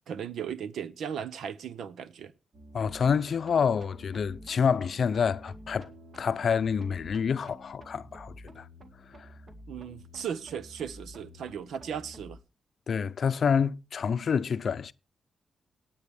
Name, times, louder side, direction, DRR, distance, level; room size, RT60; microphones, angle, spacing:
voice 1, 0.1-2.3 9.7-12.4, right 8 dB, 85° right, 0.8 m, -36 dB
sound 1, 2.5-12.4, equal, 45° right, 2.0 m, -49 dB
voice 2, 2.7-5.9 6.2-8.7 9.1-9.3 12.9-14.9, left 6 dB, 60° left, 0.5 m, -27 dB
18.0 x 8.6 x 3.5 m
cardioid pair, 95°, 0 cm